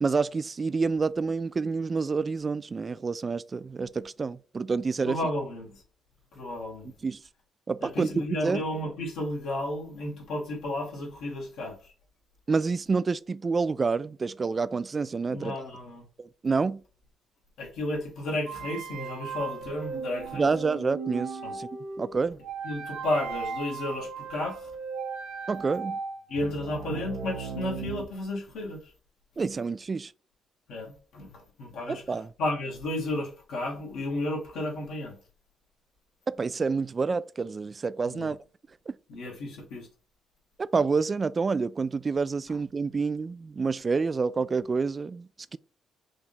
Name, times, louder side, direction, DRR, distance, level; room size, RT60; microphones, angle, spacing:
voice 1, 0.0-5.2 7.0-7.2 7.7-8.6 12.5-15.5 16.2-16.8 20.3-21.7 22.0-22.4 25.5-26.0 29.4-30.1 31.9-32.3 36.3-38.4 38.9-39.0 40.6-45.6, right 4 dB, 40° right, 0.3 m, -28 dB
voice 2, 5.0-5.8 6.3-6.9 7.8-11.9 15.3-16.0 17.6-20.5 21.4-21.6 22.6-24.7 26.3-28.8 30.7-35.2 38.1-38.3 39.1-39.9, left 1 dB, 80° left, 1.8 m, -33 dB
sound 1, 18.5-28.0, right 5 dB, 90° right, 1.0 m, -37 dB
4.9 x 2.7 x 3.3 m
supercardioid pair, 55°, 0 cm